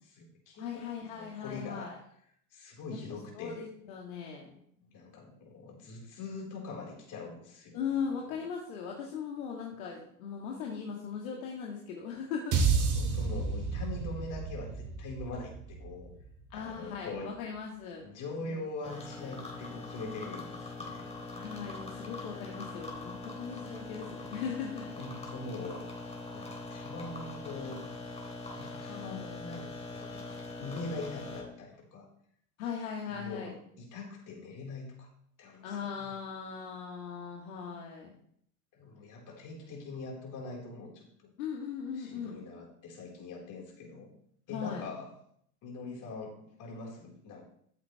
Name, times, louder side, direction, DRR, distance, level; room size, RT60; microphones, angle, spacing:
voice 1, 0.0-0.8 1.1-1.9 2.5-3.6 4.8-7.8 8.2-8.4 12.7-16.1 16.5-17.3 18.0-21.0 25.0-25.8 26.3-27.8 28.5-30.2 30.6-32.1 33.1-35.1 35.4-36.2 38.7-41.3 41.9-44.1 44.5-45.1 45.6-47.5, left 3 dB, 40° left, -1 dB, 4.7 m, -43 dB
voice 2, 0.6-2.0 3.1-4.5 7.7-12.6 16.5-18.0 18.4-18.7 21.3-24.9 32.6-33.5 35.6-38.1 41.4-42.4 44.5-44.9, left 6 dB, 65° left, -1 dB, 2.1 m, -39 dB
sound 1, 12.5-16.9, right 5 dB, 40° right, 2.9 m, -31 dB
sound 2, 18.8-31.4, left 2 dB, 15° left, 3.4 m, -42 dB
14.0 x 8.0 x 3.4 m, 0.67 s
hypercardioid pair, 85°, 45 cm